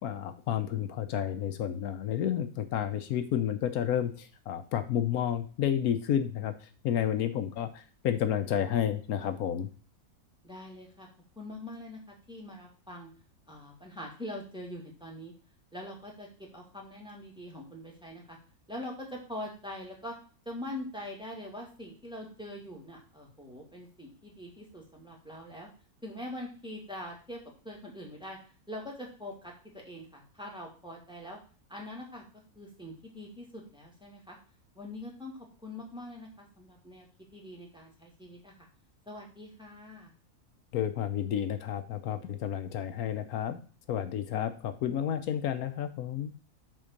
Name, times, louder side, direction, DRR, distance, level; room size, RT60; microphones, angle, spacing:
voice 1, 0.0-9.7 40.7-43.6 43.9-46.3, left 10 dB, 80° left, 9 dB, 1.2 m, -31 dB
voice 2, 10.4-11.1 11.4-13.1 13.5-15.3 15.7-18.4 18.7-20.1 20.5-25.7 26.0-28.4 28.7-29.5 29.9-31.4 31.7-32.2 32.5-34.4 34.8-35.3 35.6-37.1 37.3-38.5 39.1-40.1, left 1 dB, 5° right, -2 dB, 2.2 m, -43 dB
8.2 x 3.8 x 6.5 m, 0.38 s
omnidirectional pair, 1.5 m